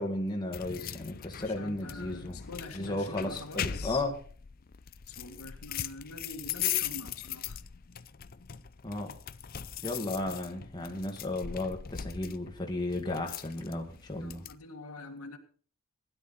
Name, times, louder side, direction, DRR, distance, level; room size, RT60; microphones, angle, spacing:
voice 1, 0.0-2.4 2.7-4.1 8.8-9.1 9.8-14.4, left 2 dB, 20° left, 1.9 m, -34 dB
sound 1, 0.5-14.6, left 9 dB, 40° left, 0.6 m, -39 dB
voice 2, 1.4-4.0 5.1-7.6 14.2-15.4, left 3 dB, 80° left, 1.9 m, -45 dB
16.5 x 11.0 x 4.2 m
head